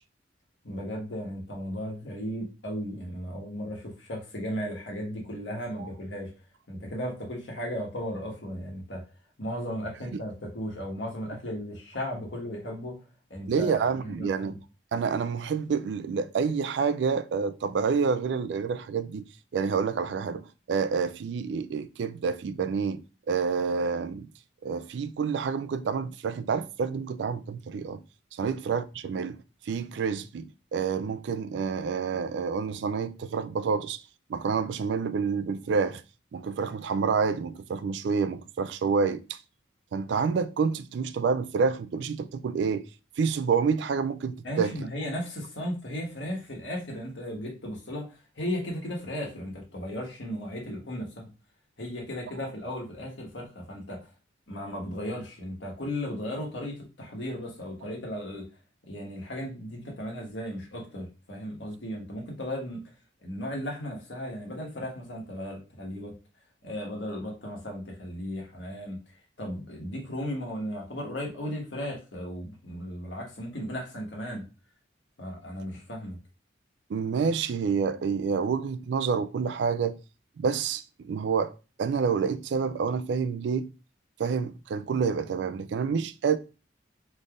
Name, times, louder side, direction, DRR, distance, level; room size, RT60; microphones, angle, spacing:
voice 1, 0.6-6.3 6.7-9.0 9.4-13.0 13.3-14.5 28.4-28.5 44.4-51.3 51.8-54.1 54.5-58.4 58.9-62.8 63.2-66.1 66.6-69.0 69.4-74.4 75.2-76.2, equal, 75° left, 1.4 m, -35 dB
voice 2, 13.5-14.6 14.9-19.2 19.5-23.0 23.3-24.3 24.6-28.0 28.3-29.4 29.7-34.0 34.3-36.0 36.3-39.4 39.9-42.8 43.2-44.7 76.9-80.0 80.4-81.5 81.8-83.7 84.2-86.4, right 5 dB, 70° right, 0.3 m, -28 dB
4.1 x 3.3 x 2.4 m
head